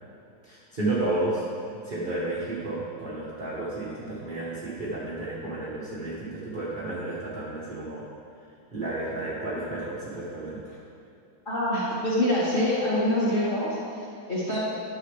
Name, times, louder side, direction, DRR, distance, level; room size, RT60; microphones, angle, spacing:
voice 1, 0.4-1.5 1.8-8.0 8.7-10.8, right 2 dB, 35° right, -7 dB, 0.8 m, -32 dB
voice 2, 11.5-14.6, left 1 dB, 25° left, -9 dB, 2.2 m, -25 dB
11.0 x 6.5 x 3.3 m, 2.7 s
omnidirectional pair, 2.2 m